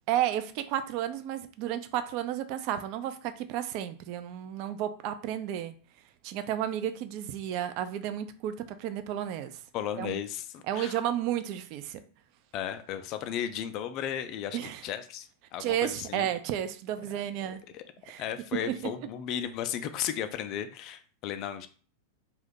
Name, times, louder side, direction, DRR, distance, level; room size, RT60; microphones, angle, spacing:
voice 1, 0.1-5.7 6.2-9.6 10.0-10.2 10.7-12.0 14.5-14.8 15.6-17.6 18.1-18.2 18.7-18.8, right 11 dB, 45° right, 10 dB, 0.3 m, -32 dB
voice 2, 9.7-11.0 12.5-16.3 17.5-17.8 18.2-21.7, left 9 dB, 40° left, 9 dB, 0.3 m, -35 dB
2.6 x 2.2 x 3.6 m, 0.40 s
figure-of-eight pair, 90°, 0 cm